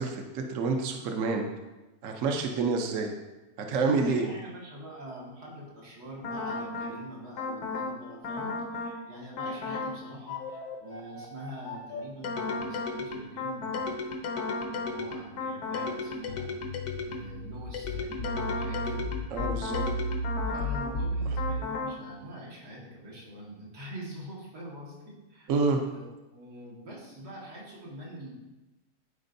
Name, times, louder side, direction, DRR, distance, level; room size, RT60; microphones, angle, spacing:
voice 1, 0.0-1.5 2.0-3.1 3.6-4.3 19.3-19.8 25.5-25.8, right 4 dB, 65° right, 3 dB, 1.0 m, -28 dB
voice 2, 3.9-14.1 14.6-16.5 17.0-19.1 20.5-26.0 26.3-28.3, equal, 85° right, -6 dB, 2.4 m, -44 dB
sound 1, 6.2-7.0 7.4-8.0 8.2-9.0 9.4-10.0 10.3-17.3 17.7-21.0 21.4-22.0, left 3 dB, 80° left, 1.4 m, -34 dB
sound 2, 16.3-21.6, equal, 60° left, 0.7 m, -33 dB
13.0 x 4.4 x 2.6 m, 1.1 s
omnidirectional pair, 1.7 m